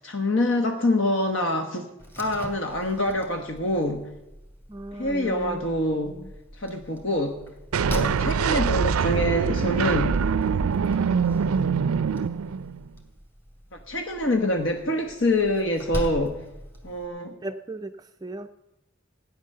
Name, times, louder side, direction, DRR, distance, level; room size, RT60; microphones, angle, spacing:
voice 1, 0.0-1.9 2.2-4.1 4.9-6.2 6.6-7.4 7.9-10.2 13.9-16.4 16.8-17.3, left 1 dB, 65° left, 4 dB, 1.3 m, -25 dB
Slam, 2.0-17.1, equal, 10° left, 2.5 m, -40 dB
voice 2, 4.7-5.6 6.1-6.3 17.4-18.6, right 2 dB, 20° right, 7 dB, 0.4 m, -37 dB
sound 1, 7.7-12.9, right 6 dB, 90° right, 0.4 m, -24 dB
16.5 x 10.0 x 6.6 m, 0.93 s
head